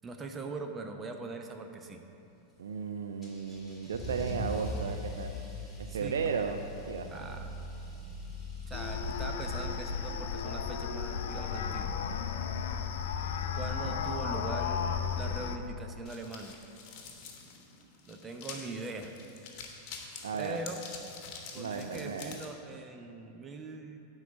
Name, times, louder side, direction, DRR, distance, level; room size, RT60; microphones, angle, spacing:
voice 1, 0.0-2.0 5.9-6.2 7.1-7.5 8.7-12.0 13.6-14.8 15.2-16.5 18.1-19.2 20.4-20.8 21.5-24.0, right 3 dB, 20° right, 4 dB, 0.8 m, -41 dB
voice 2, 2.6-5.4 5.8-6.6 6.9-7.4 13.6-13.7 20.2-20.6 21.6-22.4, right 6 dB, 65° right, 6 dB, 0.4 m, -35 dB
Car / Engine starting / Accelerating revving vroom, 3.2-9.7, equal, 5° left, 2.2 m, -41 dB
sound 1, 8.7-15.6, left 6 dB, 55° left, 0.5 m, -34 dB
sound 2, 16.1-22.5, left 5 dB, 40° left, 1.2 m, -47 dB
10.5 x 4.0 x 7.0 m, 2.8 s
figure-of-eight pair, 90°, 0 cm